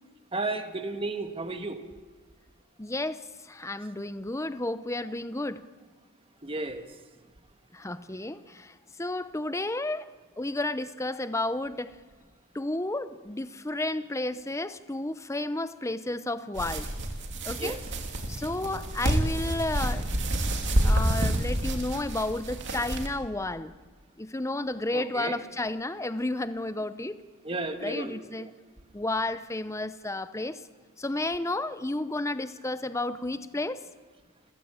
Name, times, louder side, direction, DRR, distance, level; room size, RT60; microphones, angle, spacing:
voice 1, 0.3-1.8 6.4-6.9 17.6-17.8 24.9-25.4 27.4-28.5, right 2 dB, 25° right, 7 dB, 1.5 m, -33 dB
voice 2, 2.8-3.2 3.4-5.6 7.7-8.7 9.0-10.1 10.4-11.9 12.5-16.9 17.4-17.8 18.3-20.0 20.8-23.7 24.2-27.2 27.8-28.5 28.9-30.6 31.0-33.8, left 2 dB, 15° left, 13 dB, 0.7 m, -32 dB
sound 1, 16.5-23.1, right 1 dB, 55° right, 2.8 m, -28 dB
28.0 x 15.5 x 8.8 m, 1.4 s
head